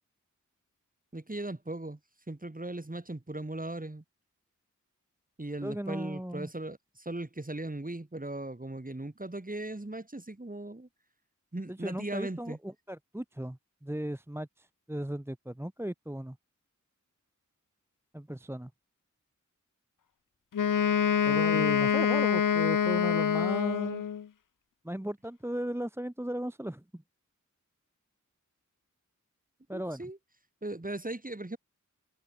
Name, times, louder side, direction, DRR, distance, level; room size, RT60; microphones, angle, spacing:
voice 1, 1.1-2.0 2.3-4.0 5.4-10.9 11.5-12.6 29.7-30.2 30.6-31.6, right 2 dB, 25° right, 4.4 m, -38 dB
voice 2, 5.6-6.5 11.7-16.4 18.1-18.7 21.2-24.0 24.8-27.0 29.7-30.1, right 1 dB, 10° right, 1.2 m, -36 dB
Wind instrument woodwind instrument, 20.5-24.3, left 8 dB, 85° left, 0.7 m, -26 dB
wide cardioid pair, 70°, 31 cm